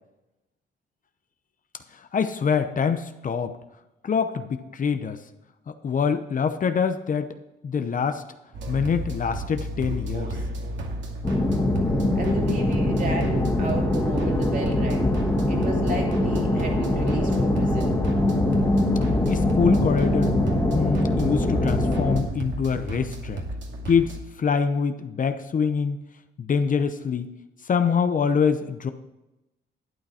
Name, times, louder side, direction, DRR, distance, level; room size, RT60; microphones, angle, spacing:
voice 1, 1.9-3.6 4.0-5.2 5.7-7.3 7.6-8.2 8.7-10.4 19.3-20.3 20.7-23.4 23.9-26.0 26.4-27.3 27.6-28.9, left 6 dB, 40° left, 9 dB, 0.8 m, -25 dB
sound 1, 8.5-24.2, right 2 dB, 65° right, 2.4 m, -33 dB
sound 2, 11.2-22.2, left 1 dB, 15° left, 2.1 m, -23 dB
voice 2, 12.1-15.1 15.5-18.0, right 3 dB, 40° right, 0 dB, 3.1 m, -32 dB
12.5 x 8.7 x 4.3 m, 0.97 s
cardioid pair, 90°, 20 cm